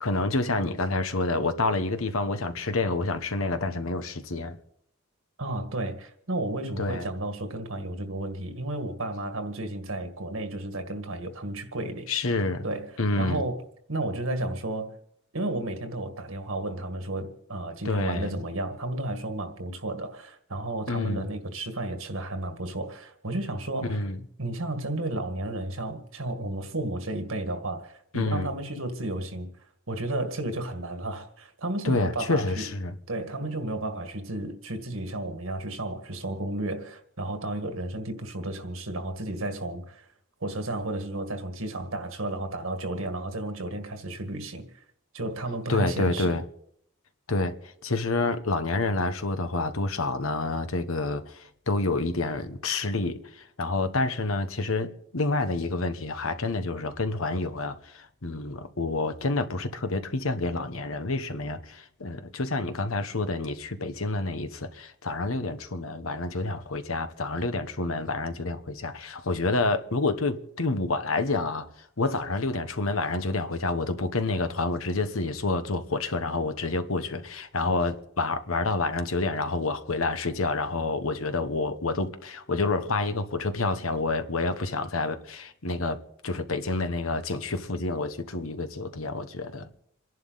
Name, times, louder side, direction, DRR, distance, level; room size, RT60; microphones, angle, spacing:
voice 1, 0.0-4.6 6.8-7.1 12.1-12.7 13.0-13.4 17.8-18.3 20.9-21.3 23.9-24.2 28.1-28.5 31.8-32.9 45.7-46.4 47.3-71.7 72.0-89.7, left 3 dB, 70° left, 1.2 m, -28 dB
voice 2, 5.4-12.1 12.6-14.9 15.3-24.0 24.4-29.5 29.9-32.7 33.1-40.1 40.4-44.7 45.1-46.4, right 1 dB, 70° right, 1.8 m, -33 dB
27.5 x 11.0 x 4.1 m
head